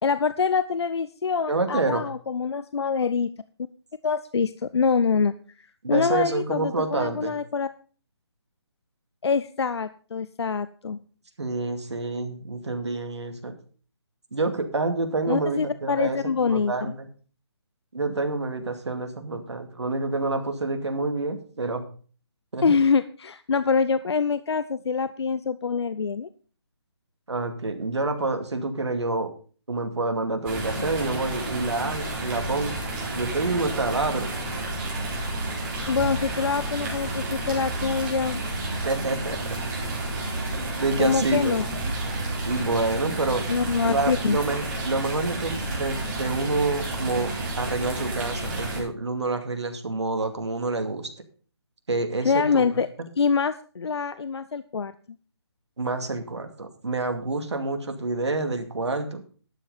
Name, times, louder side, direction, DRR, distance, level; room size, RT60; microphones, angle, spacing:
voice 1, 0.0-3.3 4.0-7.7 9.2-11.0 15.3-16.7 22.6-26.3 35.9-38.4 41.0-41.7 43.5-44.4 52.2-52.9 53.2-54.9, left 5 dB, 70° left, 14 dB, 0.6 m, -25 dB
voice 2, 1.5-2.0 5.8-7.4 11.4-13.5 14.3-16.2 16.5-17.1 17.9-21.8 22.5-22.8 27.3-29.3 29.7-32.8 33.1-34.3 38.8-39.6 40.6-41.6 42.4-43.5 43.8-51.1 51.9-52.7 53.0-53.1 55.8-59.2, right 3 dB, 80° right, 6 dB, 2.3 m, -28 dB
sound 1, 30.4-48.8, right 2 dB, 25° right, 4.3 m, -31 dB
12.0 x 7.8 x 5.3 m, 0.41 s
figure-of-eight pair, 160°, 14 cm